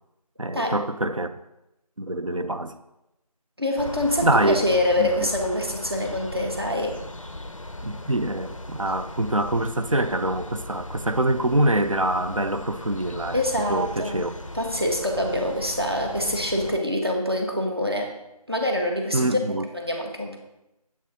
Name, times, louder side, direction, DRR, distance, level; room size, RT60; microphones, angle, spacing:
voice 1, 0.4-1.3 2.0-2.8 4.2-4.7 5.0-5.3 7.8-13.4 13.7-14.3 19.1-19.7, right 1 dB, 55° right, 0.4 m, -25 dB
voice 2, 3.6-7.0 13.3-14.2 14.5-18.1 18.5-19.4 19.7-20.4, left 1 dB, 40° right, 0.8 m, -25 dB
sound 1, 3.8-16.8, left 1 dB, 55° left, 0.4 m, -38 dB
7.3 x 3.6 x 4.1 m
figure-of-eight pair, 175°, 20 cm